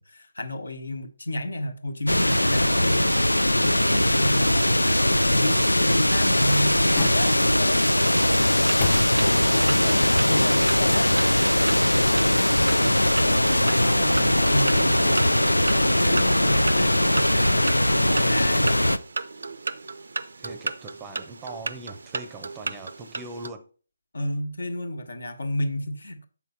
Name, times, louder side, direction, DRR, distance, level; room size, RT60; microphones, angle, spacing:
voice 1, 0.0-4.9 5.2-7.9 9.2-10.0 10.3-11.1 14.5-14.7 15.8-18.7 24.1-26.3, left 1 dB, 60° left, 1.3 m, -30 dB
sound 1, 2.1-19.0, left 1 dB, 80° left, 0.5 m, -20 dB
sound 2, 6.1-7.8 8.3-9.6 10.0-10.1, left 6 dB, 25° left, 0.7 m, -35 dB
sound 3, 8.4-23.5, right 3 dB, 55° right, 0.5 m, -36 dB
voice 2, 9.1-10.0 12.7-15.4 20.4-23.7, right 3 dB, 15° right, 0.7 m, -41 dB
7.2 x 5.7 x 4.0 m
figure-of-eight pair, 145°, 0 cm